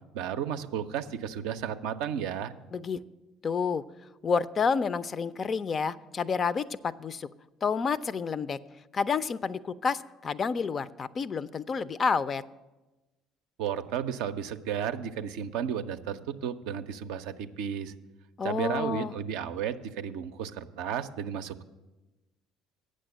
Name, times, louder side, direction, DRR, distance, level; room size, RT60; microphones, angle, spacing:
voice 1, 0.1-2.5 13.6-17.9 18.4-21.6, right 8 dB, 70° right, 8 dB, 0.5 m, -33 dB
voice 2, 3.4-3.8 4.2-7.3 7.6-8.6 8.9-12.4 18.4-19.1, left 5 dB, 40° left, 16 dB, 0.4 m, -29 dB
8.6 x 6.4 x 7.8 m, 1.1 s
hypercardioid pair, 60°, 0 cm